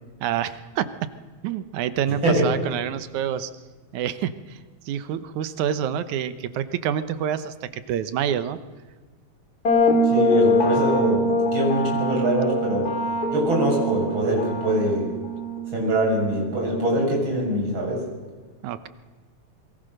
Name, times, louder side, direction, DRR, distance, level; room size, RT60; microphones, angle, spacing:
voice 1, 0.2-1.1 1.4-3.5 3.9-4.6 4.9-8.6 18.6-18.9, right 9 dB, 85° right, 13 dB, 2.4 m, -27 dB
voice 2, 2.2-2.6 10.0-13.0 13.3-15.2 15.7-18.1, right 1 dB, 40° right, 0 dB, 7.1 m, -23 dB
sound 1, 9.7-17.3, left 1 dB, 30° left, 3.7 m, -24 dB
26.0 x 23.0 x 6.6 m, 1.4 s
omnidirectional pair, 3.3 m